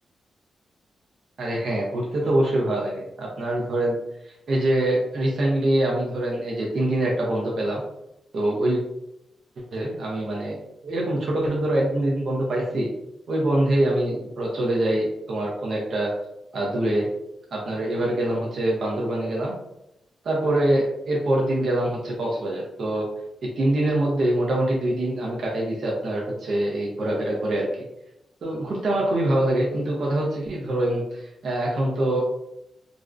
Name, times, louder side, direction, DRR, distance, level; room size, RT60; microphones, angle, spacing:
voice 1, 1.4-4.0 4.2-7.8 8.3-8.8 9.7-12.9 13.3-16.1 16.5-17.1 17.5-19.6 20.2-23.1 23.6-27.9 28.4-32.2, right 1 dB, 65° right, -3 dB, 0.6 m, -24 dB
2.5 x 2.0 x 2.4 m, 0.83 s
cardioid pair, 75°, 0 cm